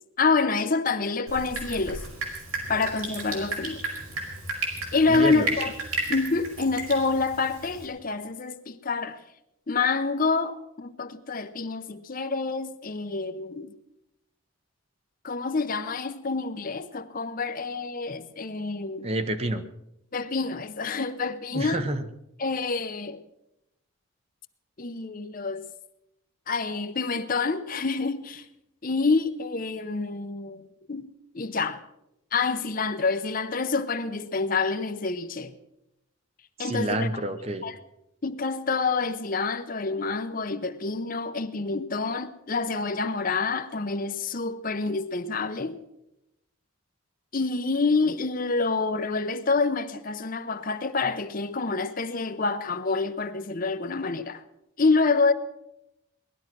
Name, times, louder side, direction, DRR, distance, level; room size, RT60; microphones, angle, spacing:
voice 1, 0.2-2.0 2.7-3.8 4.9-5.7 6.1-9.2 9.7-13.7 15.2-19.1 20.1-21.9 22.4-23.2 24.8-25.7 26.5-28.4 28.8-31.1 31.3-31.8 32.3-35.5 36.6-37.1 37.6-37.8 38.2-45.8 47.3-54.4 54.8-55.3, left 4 dB, 40° left, 0.7 m, -27 dB
Drip, 1.3-7.9, right 2 dB, 80° right, 5.2 m, -34 dB
voice 2, 5.1-5.5 19.0-19.6 21.5-22.0 36.6-37.7, right 1 dB, 30° right, 0.8 m, -28 dB
19.0 x 12.0 x 6.1 m
head